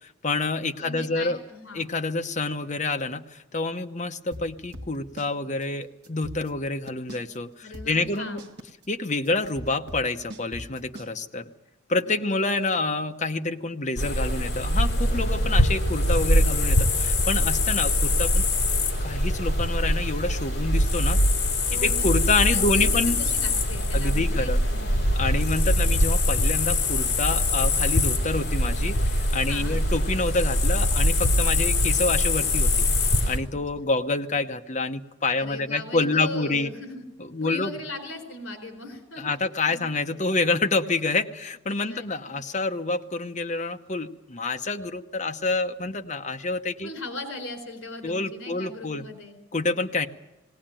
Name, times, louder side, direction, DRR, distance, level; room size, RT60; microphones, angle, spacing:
voice 1, 0.0-1.4 1.7-8.4 8.9-11.5 11.9-18.4 19.0-21.2 21.7-23.2 23.9-24.6 25.2-32.9 33.3-36.7 37.2-37.7 39.2-46.9 48.0-49.0 49.5-50.1, left 3 dB, 35° left, 6 dB, 0.8 m, -27 dB
voice 2, 0.8-1.9 7.6-8.5 12.0-12.5 21.7-22.0 22.5-25.1 29.5-29.8 33.8-33.9 35.4-37.0 37.4-39.4 39.6-39.8 41.9-42.4 46.8-49.4, left 2 dB, 70° left, 5 dB, 4.2 m, -39 dB
sound 1, 4.3-5.3 5.6-5.7 6.0-7.4 7.7-11.1, equal, 50° right, 1.3 m, -40 dB
sound 2, 14.0-33.4, left 1 dB, 50° left, 3.0 m, -23 dB
19.5 x 18.0 x 8.9 m, 1.1 s
head